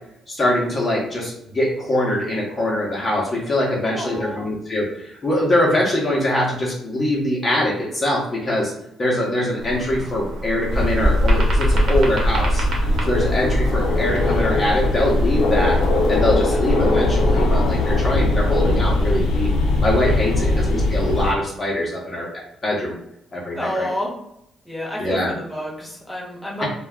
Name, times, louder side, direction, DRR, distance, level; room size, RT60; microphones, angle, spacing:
voice 1, 0.3-8.7 9.0-12.6 13.1-15.8 16.1-19.5 19.8-22.9 23.3-23.9 25.0-25.3 26.6-26.7, left 1 dB, 35° left, -4 dB, 0.8 m, -23 dB
voice 2, 3.8-4.5 13.2-13.4 16.5-16.6 20.4-20.7 23.5-24.1 24.6-26.7, left 1 dB, ahead, -4 dB, 1.0 m, -30 dB
sound 1, 9.6-16.2, equal, 60° right, 0.9 m, -24 dB
sound 2, 10.7-21.3, left 2 dB, 90° left, 0.5 m, -20 dB
2.2 x 2.2 x 3.5 m, 0.78 s
cardioid pair, 90°, 0 cm